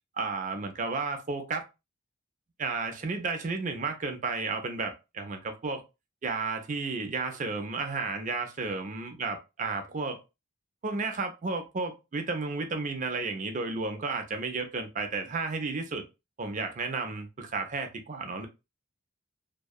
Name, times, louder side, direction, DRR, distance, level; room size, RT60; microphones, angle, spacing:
voice 1, 0.2-1.6 2.6-5.8 6.2-10.2 10.8-16.0 16.4-18.5, right 3 dB, 40° right, 0.5 m, -32 dB
2.7 x 2.2 x 2.2 m
head